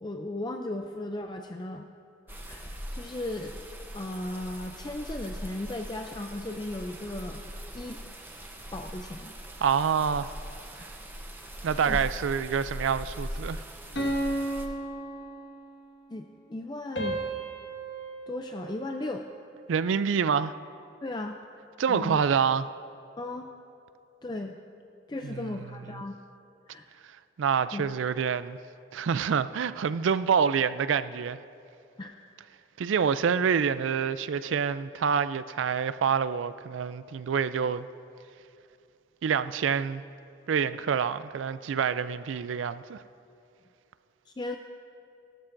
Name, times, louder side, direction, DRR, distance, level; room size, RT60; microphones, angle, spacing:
voice 1, 0.0-1.9 2.3-3.6 3.9-7.4 7.7-8.0 8.7-9.3 11.9-12.0 16.1-17.2 18.3-19.3 21.0-21.4 21.9-22.2 23.2-23.5 24.2-24.6 25.1-26.2 26.7-26.8 27.7-27.8 32.0-32.1 44.3-44.6, left 2 dB, 20° left, 0.4 m, -36 dB
sound 1, 2.3-14.7, equal, 10° right, 0.8 m, -41 dB
voice 2, 9.6-10.3 10.8-10.9 11.6-13.6 19.7-20.5 21.8-22.7 25.2-25.6 27.4-28.6 28.9-31.4 32.8-37.9 39.2-40.0 40.5-43.0, right 6 dB, 85° right, 0.4 m, -27 dB
sound 2, 14.0-15.9 17.0-19.3, right 1 dB, 65° left, 1.7 m, -34 dB
18.5 x 13.0 x 2.6 m
head